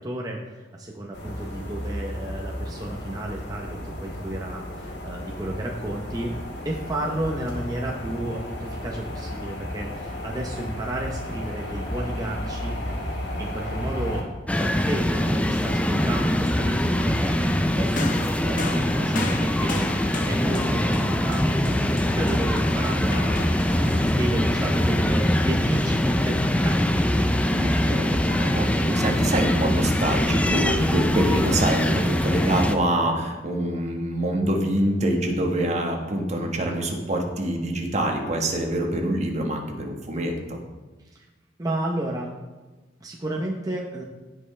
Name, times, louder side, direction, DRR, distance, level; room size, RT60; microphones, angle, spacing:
voice 1, 0.0-6.4 6.6-13.0 13.4-14.2 14.6-27.6 41.1-41.3 41.6-42.3 43.0-44.0, right 1 dB, 20° right, -1 dB, 0.8 m, -32 dB
sound 1, 1.1-14.2, left 1 dB, 80° left, 2.3 m, -33 dB
sound 2, 14.5-32.8, left 1 dB, 10° left, 0.5 m, -23 dB
sound 3, 18.0-25.5 26.5-26.6, left 2 dB, 50° left, 0.9 m, -36 dB
voice 2, 27.5-40.6, right 1 dB, 40° right, 2 dB, 1.4 m, -25 dB
16.5 x 5.5 x 3.3 m, 1.2 s
head